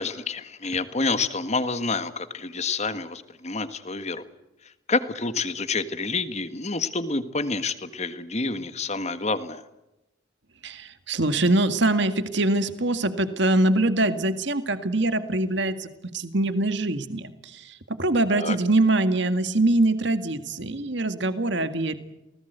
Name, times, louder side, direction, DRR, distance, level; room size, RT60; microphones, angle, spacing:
voice 1, 0.0-4.2 4.9-9.6 18.3-18.6, left 3 dB, 35° left, 11 dB, 1.6 m, -28 dB
voice 2, 10.6-22.0, right 2 dB, 60° right, 10 dB, 1.9 m, -23 dB
28.0 x 19.0 x 8.2 m, 0.93 s
head